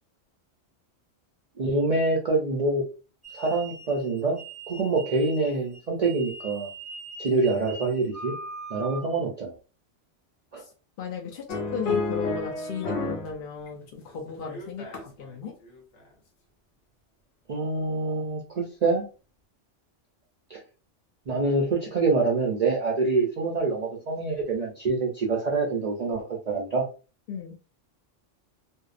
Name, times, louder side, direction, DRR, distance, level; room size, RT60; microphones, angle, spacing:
voice 1, 1.6-2.8 3.3-4.4 4.7-6.7 7.2-8.3 8.7-9.5 10.5-10.6 17.5-19.0 20.5-20.6 21.3-26.8, right 3 dB, 65° right, -1 dB, 0.4 m, -26 dB
sound 1, 3.2-9.2, right 3 dB, ahead, 0.5 m, -41 dB
voice 2, 11.0-15.5 27.3-27.6, left 5 dB, 60° left, 0 dB, 0.7 m, -36 dB
sound 2, 11.5-13.3 13.7-15.3 15.7-16.0, left 3 dB, 75° left, 1.0 m, -30 dB
2.6 x 2.0 x 2.4 m, 0.34 s
omnidirectional pair, 1.2 m